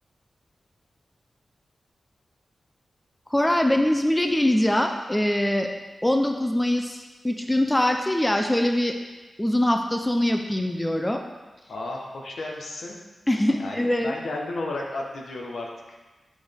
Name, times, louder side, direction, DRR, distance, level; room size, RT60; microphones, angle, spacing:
voice 1, 3.3-5.7 6.0-9.0 9.4-11.2 13.3-14.1, left 1 dB, 10° left, 4 dB, 0.4 m, -23 dB
voice 2, 11.7-13.0 13.6-15.7, left 2 dB, 75° left, -1 dB, 1.2 m, -33 dB
7.7 x 6.1 x 3.5 m, 1.2 s
wide cardioid pair, 135°, 0 cm